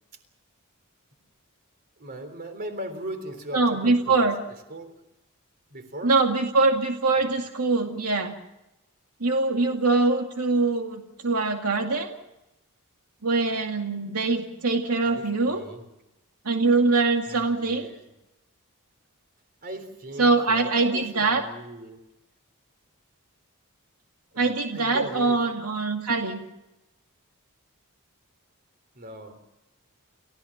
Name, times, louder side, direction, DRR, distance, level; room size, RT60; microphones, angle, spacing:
voice 1, 2.0-5.0 5.7-6.2 7.2-7.3 15.0-15.9 17.3-18.1 19.6-22.0 24.3-25.5 28.9-29.4, right 1 dB, 45° right, 7 dB, 3.7 m, -39 dB
voice 2, 3.5-4.3 6.0-8.3 9.2-12.2 13.2-15.6 16.4-17.9 20.2-21.4 24.4-26.4, right 3 dB, 90° right, 3 dB, 2.3 m, -23 dB
30.0 x 15.5 x 7.2 m, 0.93 s
head